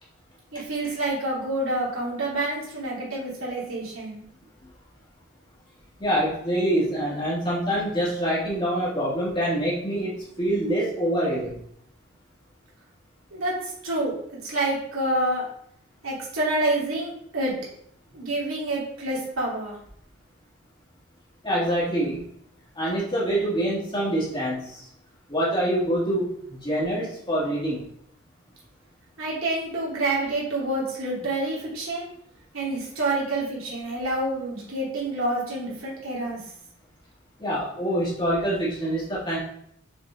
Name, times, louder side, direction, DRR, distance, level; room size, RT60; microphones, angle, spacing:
voice 1, 0.5-4.2 13.3-14.1 14.4-15.5 16.0-17.5 18.1-19.8 29.2-32.1 32.5-36.4, right 2 dB, 85° right, -5 dB, 2.6 m, -28 dB
voice 2, 6.0-11.6 21.4-22.3 22.8-24.9 25.3-27.8 37.4-39.4, right 1 dB, 20° left, -7 dB, 2.1 m, -25 dB
6.2 x 4.3 x 3.7 m, 0.70 s
head